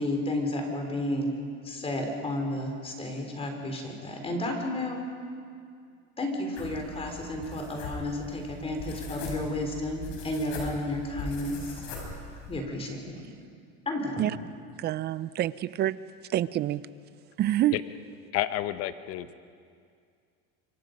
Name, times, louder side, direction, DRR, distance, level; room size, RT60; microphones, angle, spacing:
voice 1, 0.0-1.3 1.6-5.0 6.2-11.9 12.5-13.2 13.9-14.2, left 1 dB, 20° left, 3 dB, 3.9 m, -32 dB
sound 1, 6.6-12.6, left 3 dB, 70° left, 6.6 m, -40 dB
voice 2, 14.8-16.0 16.3-16.8 17.4-17.8, right 13 dB, 35° right, 18 dB, 0.5 m, -27 dB
voice 3, 18.3-19.4, left 14 dB, 55° left, 12 dB, 1.0 m, -30 dB
26.5 x 23.5 x 5.3 m, 2.3 s
supercardioid pair, 130°, 29 cm